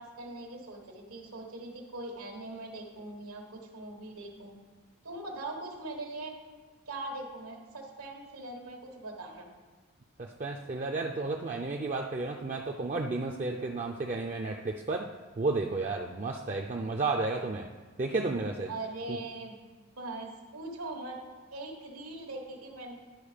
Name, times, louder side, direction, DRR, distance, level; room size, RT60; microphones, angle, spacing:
voice 1, 0.0-4.5 5.0-6.3 6.9-9.4 18.7-19.6 20.0-21.2 21.5-23.0, right 2 dB, 85° right, 1 dB, 1.3 m, -41 dB
voice 2, 10.2-15.1 15.4-17.7 18.0-18.7 19.1-19.2, right 3 dB, 35° right, 2 dB, 0.3 m, -32 dB
10.5 x 4.7 x 4.9 m, 1.4 s
head